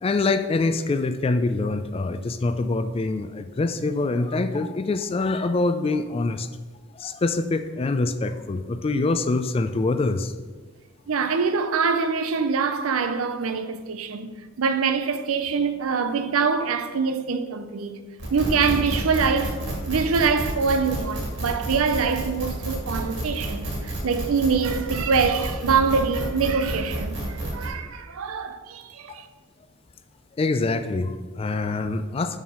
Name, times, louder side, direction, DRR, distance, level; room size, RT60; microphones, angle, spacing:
voice 1, 0.0-6.5 6.9-10.3 30.4-32.4, left 3 dB, 25° left, 0.3 m, -25 dB
voice 2, 11.1-14.3 14.6-18.0 18.3-19.6 19.9-29.3, right 5 dB, 80° right, 0.5 m, -24 dB
sound 1, 18.2-27.7, right 1 dB, 55° right, 1.7 m, -30 dB
5.7 x 4.7 x 5.4 m
head